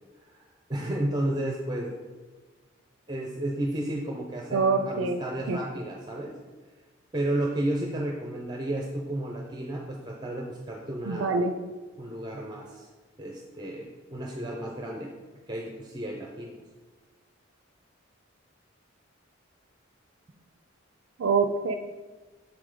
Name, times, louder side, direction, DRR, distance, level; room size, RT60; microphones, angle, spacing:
voice 1, 0.7-1.9 3.1-6.4 7.1-11.4 12.0-12.9 13.2-15.1 15.5-16.6, right 1 dB, 20° right, 0 dB, 0.5 m, -32 dB
voice 2, 4.5-5.2 5.5-5.6 11.1-11.5 21.2-21.7, right 4 dB, 75° right, 6 dB, 0.4 m, -25 dB
7.1 x 4.8 x 3.8 m, 1.3 s
head